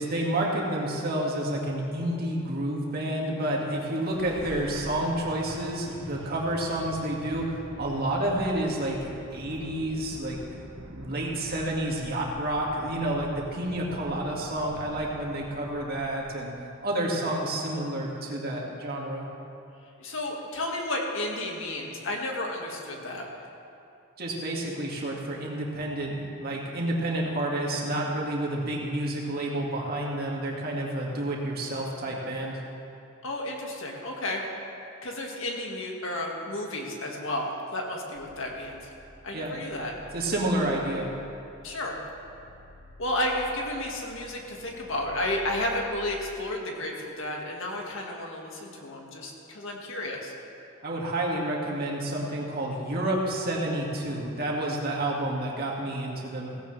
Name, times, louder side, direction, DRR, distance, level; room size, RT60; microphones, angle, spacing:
voice 1, 0.0-10.4 10.9-16.5 16.8-19.3 24.2-32.6 39.3-39.5 40.1-41.1 50.8-56.5, right 1 dB, 50° right, -3 dB, 2.2 m, -29 dB
sound 1, 3.5-16.6, right 1 dB, 80° right, 1.3 m, -45 dB
voice 2, 20.0-23.3 33.2-34.4 35.0-38.8 39.2-39.9 41.6-42.0 43.0-50.3, left 1 dB, 65° left, 0 dB, 2.0 m, -32 dB
sound 2, 38.1-45.9, equal, 35° left, 1.8 m, -51 dB
16.5 x 16.0 x 3.4 m, 2.7 s
head